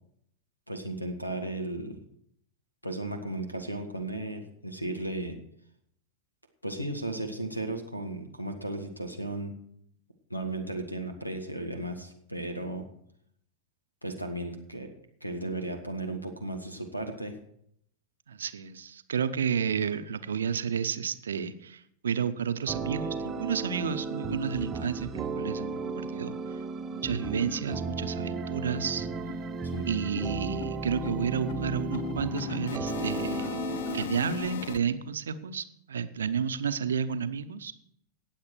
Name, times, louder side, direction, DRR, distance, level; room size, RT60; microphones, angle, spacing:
voice 1, 0.7-2.0 2.8-5.4 6.6-9.6 10.3-12.9 14.0-14.9 15.2-17.3 29.7-29.9, right 1 dB, 90° left, 8 dB, 1.7 m, -35 dB
voice 2, 18.3-26.4 26.9-29.1 29.8-33.6 33.9-37.7, right 7 dB, 65° right, 11 dB, 0.8 m, -31 dB
sound 1, 22.7-34.1, right 4 dB, 20° right, 1.0 m, -35 dB
sound 2, 27.5-27.6 28.0-28.1 28.4-28.6 28.8-34.8, left 11 dB, 55° left, 0.5 m, -38 dB
18.0 x 7.4 x 4.7 m, 0.71 s
figure-of-eight pair, 90°, 0 cm